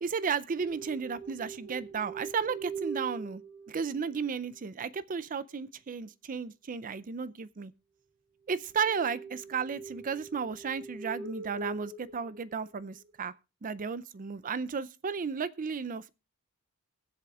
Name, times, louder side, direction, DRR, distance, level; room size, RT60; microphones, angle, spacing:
voice 1, 0.0-3.4 3.7-7.7 8.5-13.3 13.6-16.1, right 6 dB, 40° right, 0.5 m, -34 dB
sound 1, 0.6-4.3 8.7-13.1, right 4 dB, 60° right, 4.5 m, -43 dB
22.5 x 7.7 x 2.4 m
head